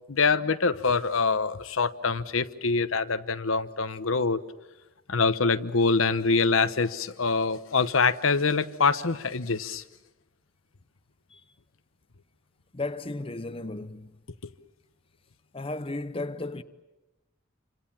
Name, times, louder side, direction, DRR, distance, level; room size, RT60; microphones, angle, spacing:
voice 1, 0.1-4.4 5.1-9.8 14.4-14.5, left 4 dB, 90° left, 1.0 m, -25 dB
voice 2, 12.7-14.1 15.5-16.6, left 2 dB, 30° left, 0.9 m, -34 dB
28.0 x 26.0 x 7.3 m
head